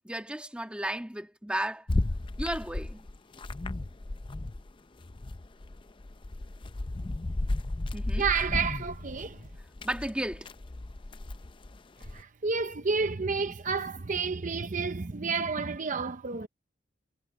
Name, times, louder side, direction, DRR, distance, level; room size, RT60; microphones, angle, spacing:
voice 1, 0.0-1.9 2.4-3.1 7.9-8.2 9.8-10.5, right 1 dB, 5° right, 1.6 m, -34 dB
sound 1, 1.9-4.7 5.0-12.2, left 2 dB, 25° left, 0.5 m, -34 dB
voice 2, 8.2-9.5 12.0-16.5, right 5 dB, 45° right, 0.7 m, -30 dB
head